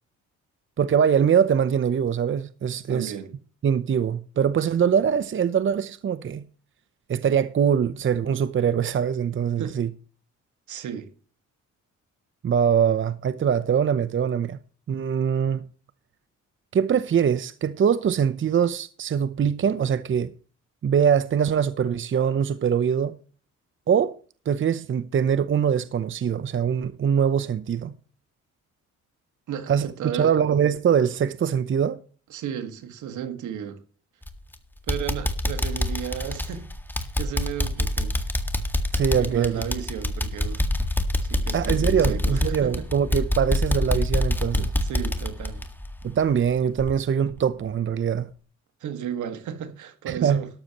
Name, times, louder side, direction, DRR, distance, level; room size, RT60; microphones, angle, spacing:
voice 1, 0.8-3.1 3.6-6.4 7.1-9.9 12.4-14.6 14.9-15.7 16.7-20.3 20.8-23.1 23.9-24.2 24.5-27.9 29.7-29.9 30.1-32.0 38.9-39.6 41.5-44.7 46.0-48.3 50.1-50.4, right 8 dB, 40° right, 0.8 m, -23 dB
voice 2, 2.9-3.3 9.6-9.8 10.7-11.1 29.5-30.3 32.3-33.8 34.9-36.7 37.2-38.2 39.2-40.7 41.2-42.9 44.8-45.7 48.8-50.5, right 9 dB, 75° right, 1.8 m, -34 dB
sound 1, 34.2-34.5 34.9-46.5 46.8-46.9 47.4-47.5, left 1 dB, 5° left, 1.8 m, -26 dB
13.0 x 12.0 x 3.0 m
cardioid pair, 90°, 30 cm